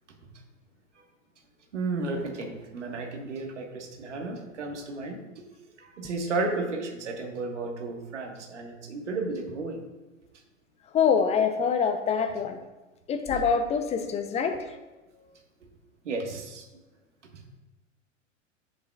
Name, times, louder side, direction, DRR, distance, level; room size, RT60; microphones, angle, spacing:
voice 1, 1.7-5.4 5.8-9.8 16.0-16.7, right 3 dB, 65° right, 2 dB, 1.7 m, -33 dB
voice 2, 10.9-12.6 13.1-14.8, left 6 dB, 15° left, 7 dB, 0.7 m, -25 dB
11.0 x 8.2 x 2.5 m, 1.1 s
figure-of-eight pair, 95°, 38 cm